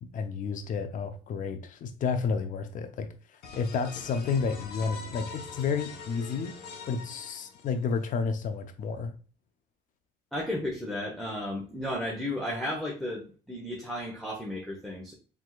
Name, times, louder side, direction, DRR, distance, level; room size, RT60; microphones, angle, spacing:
voice 1, 0.0-3.1 3.6-6.6 6.9-9.2, left 5 dB, 50° left, 0.7 m, -31 dB
sound 1, 3.4-8.0, left 5 dB, 70° left, 1.1 m, -43 dB
voice 2, 10.3-15.1, left 1 dB, ahead, 1.1 m, -34 dB
4.7 x 3.6 x 2.4 m
cardioid pair, 110°, 17 cm